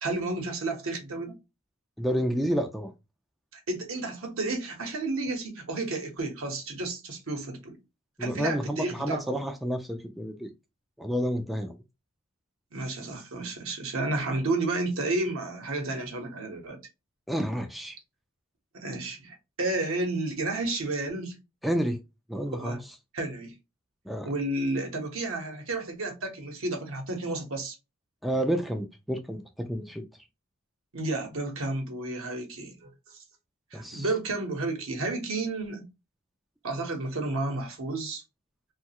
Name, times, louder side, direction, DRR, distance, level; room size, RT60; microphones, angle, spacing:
voice 1, 0.0-1.4 3.5-7.8 8.2-9.4 12.7-16.8 18.7-21.4 22.5-22.8 23.1-23.5 24.2-27.7 30.9-33.2 33.7-35.9 36.6-38.2, right 2 dB, 75° right, 0.9 m, -31 dB
voice 2, 2.0-2.9 8.2-10.5 11.0-11.8 17.3-18.0 21.6-22.0 22.3-22.8 24.1-24.3 28.2-30.0 33.7-34.1, equal, ahead, 0.3 m, -30 dB
3.1 x 2.3 x 2.8 m
head